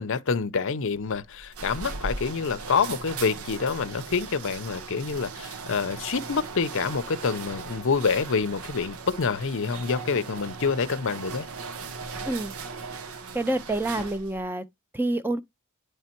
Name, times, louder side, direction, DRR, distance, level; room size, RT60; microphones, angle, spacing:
voice 1, 0.0-11.4, left 5 dB, 60° left, 0.6 m, -27 dB
sound 1, 1.0-14.5, right 4 dB, 75° right, 0.8 m, -38 dB
voice 2, 13.3-14.6 14.9-15.4, right 2 dB, 10° right, 0.6 m, -27 dB
9.5 x 3.3 x 4.4 m
head